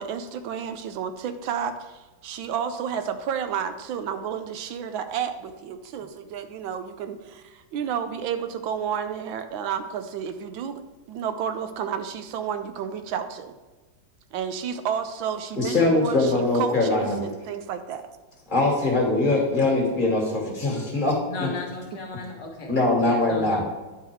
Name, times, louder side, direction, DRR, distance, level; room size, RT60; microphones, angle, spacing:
voice 1, 0.0-10.8 11.1-13.5 14.3-18.0, right 8 dB, 85° right, 9 dB, 1.4 m, -31 dB
voice 2, 15.6-17.2 18.5-21.5 22.7-23.7, left 2 dB, 30° left, -1 dB, 1.4 m, -22 dB
voice 3, 21.3-22.7 23.0-23.6, left 3 dB, 60° left, 1 dB, 1.6 m, -35 dB
10.0 x 3.9 x 4.5 m, 1.2 s
omnidirectional pair, 2.1 m